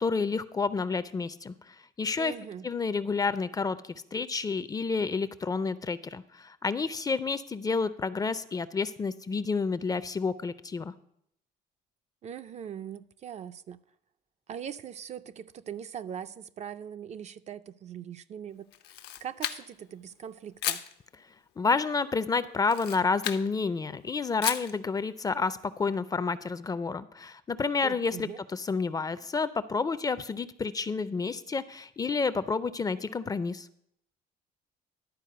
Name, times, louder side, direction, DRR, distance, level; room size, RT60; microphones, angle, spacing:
voice 1, 0.0-2.3 2.6-3.8 4.1-10.9 21.6-33.7, left 4 dB, 20° left, 0.4 m, -30 dB
voice 2, 2.2-2.7 12.2-13.8 14.5-18.7 19.2-20.8 27.8-28.4, right 8 dB, 40° right, 0.4 m, -41 dB
Camera, 18.7-19.9 20.6-20.9 22.6-23.5 24.4-24.8, left 11 dB, 75° left, 0.7 m, -33 dB
11.5 x 4.5 x 6.6 m
cardioid pair, 110°, 17 cm